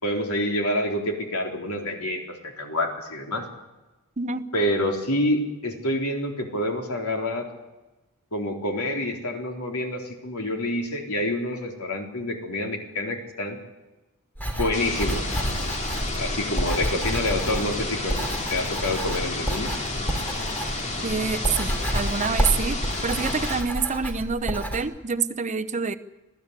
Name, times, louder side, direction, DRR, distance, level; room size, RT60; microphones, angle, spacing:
voice 1, 0.0-3.5 4.5-7.5 8.3-13.6 14.6-15.2 16.2-19.8, left 1 dB, 75° left, 2 dB, 3.9 m, -27 dB
voice 2, 4.2-4.5 21.0-22.8 23.0-26.0, right 5 dB, 35° right, 11 dB, 0.8 m, -27 dB
Writing, 14.4-24.8, equal, 10° left, 3.3 m, -29 dB
sound 1, 14.7-23.6, left 2 dB, 30° left, 2.8 m, -31 dB
26.0 x 16.0 x 8.3 m, 1.1 s
head